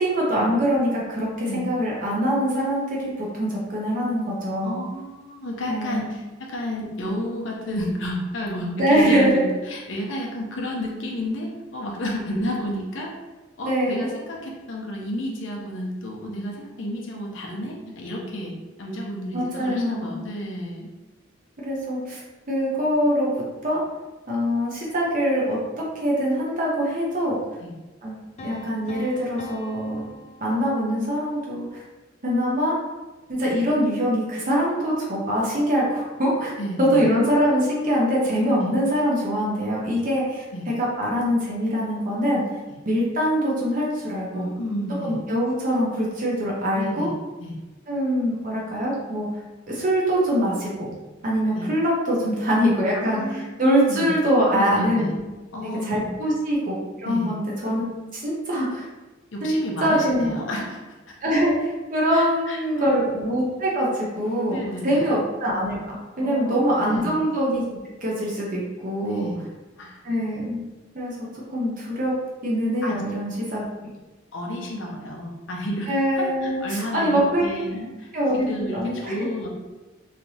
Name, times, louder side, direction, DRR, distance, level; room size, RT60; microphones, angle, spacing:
voice 1, 0.0-4.8 5.7-6.1 8.8-9.5 13.6-14.1 19.3-20.2 21.6-22.2 22.5-23.3 23.6-23.8 24.3-27.4 28.0-28.1 28.4-30.0 30.4-31.8 32.2-32.8 33.3-36.5 36.8-40.4 40.8-42.4 42.9-44.5 45.0-47.1 47.9-49.3 49.7-50.9 51.2-55.1 55.6-57.8 58.1-58.9 59.4-60.4 61.2-65.8 66.2-69.3 70.0-70.6 70.9-71.2 71.5-72.1 72.4-73.6 75.9-77.4 78.1-78.5 78.7-79.1, equal, 45° right, -4 dB, 0.7 m, -23 dB
voice 2, 4.6-13.2 13.6-20.9 27.6-27.7 36.6-37.1 38.6-38.7 40.5-40.7 42.7-42.8 44.3-45.2 46.7-47.1 47.4-47.6 51.2-51.7 52.9-53.6 53.9-54.1 54.5-55.1 55.5-56.1 57.1-57.3 59.3-60.8 62.1-63.0 64.5-65.1 66.2-67.1 69.0-69.4 69.8-70.0 72.8-73.0 74.3-75.9 76.2-79.5, equal, 75° left, -1 dB, 0.7 m, -31 dB
sound 1, 28.4-31.3, left 2 dB, 35° left, 0.3 m, -43 dB
3.2 x 2.8 x 2.7 m, 1.2 s
head